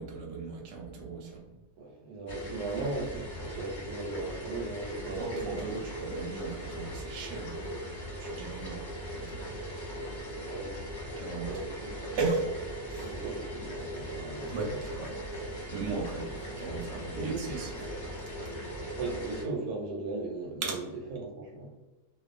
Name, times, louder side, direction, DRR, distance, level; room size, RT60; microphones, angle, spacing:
voice 1, 0.0-1.6 5.0-8.8 9.2-9.5 11.2-11.6 12.2-12.5 12.9-13.1 14.5-15.1 15.7-17.9 20.6-20.8, right 3 dB, 55° right, -1 dB, 0.9 m, -36 dB
voice 2, 1.8-5.8 10.5-11.9 13.0-14.8 17.2-17.9 18.8-20.8 21.1-21.7, right 3 dB, 75° right, 0 dB, 1.1 m, -38 dB
sound 1, 2.3-19.4, equal, 35° left, 0.9 m, -39 dB
2.5 x 2.4 x 2.4 m, 1.1 s
omnidirectional pair, 1.7 m